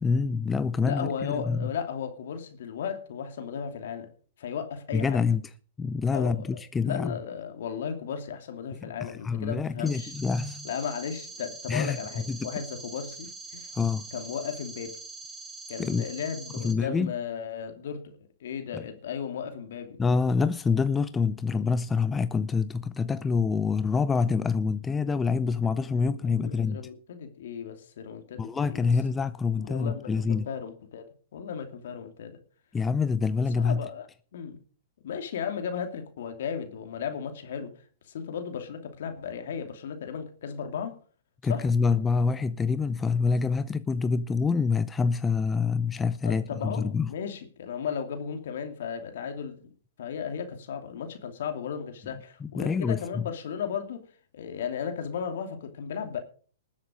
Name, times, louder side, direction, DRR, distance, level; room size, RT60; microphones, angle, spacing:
voice 1, 0.0-1.7 4.9-5.4 5.8-7.2 8.8-10.7 11.7-12.0 12.3-12.5 13.7-14.1 15.8-16.0 16.6-17.1 18.7-18.8 20.0-26.9 28.4-30.5 32.7-33.9 41.4-47.1 52.4-53.2, left 5 dB, 15° left, 0.5 m, -26 dB
voice 2, 0.8-4.1 4.4-5.2 6.1-6.5 6.8-10.1 10.6-13.7 14.1-15.0 15.7-18.1 18.4-20.0 26.2-28.9 29.6-32.4 33.6-34.1 34.3-34.6 35.0-37.7 38.1-41.0 41.5-41.7 46.2-49.7 50.0-54.1 54.3-56.2, left 7 dB, 65° left, 2.7 m, -35 dB
sound 1, 9.9-16.7, right 4 dB, 5° right, 4.6 m, -43 dB
20.0 x 7.4 x 5.1 m
hypercardioid pair, 115°, 0 cm